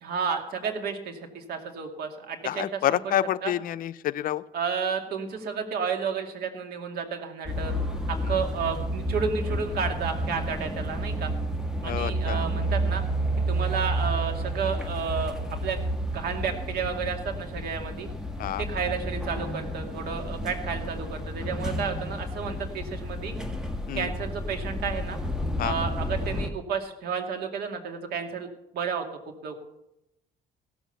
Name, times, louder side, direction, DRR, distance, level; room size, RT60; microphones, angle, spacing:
voice 1, 0.0-3.2 3.4-3.5 4.5-7.7 8.3-11.3 11.8-13.0 13.5-15.4 15.6-15.8 16.1-18.1 18.6-23.3 23.9-25.2 25.6-28.5 28.7-29.1 29.4-29.5, right 6 dB, 65° right, 4 dB, 2.4 m, -31 dB
voice 2, 2.4-4.4 11.8-12.5 18.4-18.6 23.9-24.1 25.6-25.8, left 12 dB, 55° left, 13 dB, 0.6 m, -28 dB
sound 1, 7.5-26.5, right 1 dB, 5° right, 1.7 m, -31 dB
16.0 x 7.2 x 6.8 m, 0.85 s
cardioid pair, 110°, 17 cm